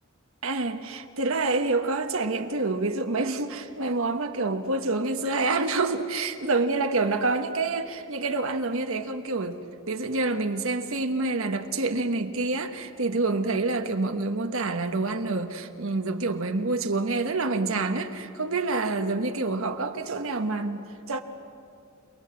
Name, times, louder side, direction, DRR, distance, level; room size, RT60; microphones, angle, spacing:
voice 1, 0.4-9.6 9.9-21.2, right 3 dB, 70° right, 1.3 m, -27 dB
29.0 x 20.5 x 7.6 m
head